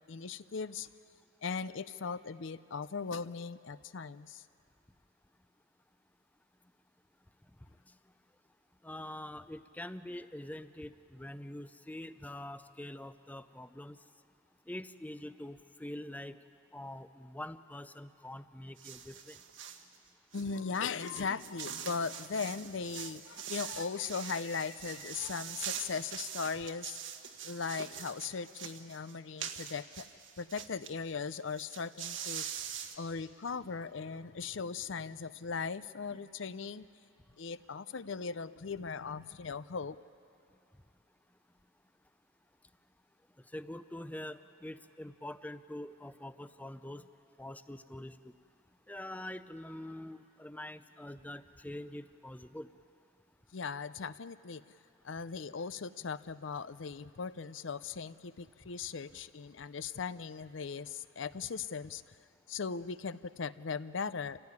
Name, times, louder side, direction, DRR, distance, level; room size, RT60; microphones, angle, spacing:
voice 1, 0.1-0.9 1.4-4.4 20.3-27.0 27.4-30.1 30.4-32.5 33.0-36.9 37.4-40.0 53.5-54.6 55.0-62.1 62.5-64.4, left 5 dB, 70° left, 15 dB, 0.6 m, -38 dB
voice 2, 8.8-14.0 14.7-16.4 16.7-19.4 43.5-47.1 47.4-48.3 48.9-52.7, left 1 dB, 10° left, 12 dB, 0.5 m, -45 dB
sound 1, 18.8-19.8 20.3-30.9 31.2-31.3 31.5-33.0, right 8 dB, 65° right, 1.4 m, -43 dB
27.0 x 16.5 x 9.7 m, 2.6 s
head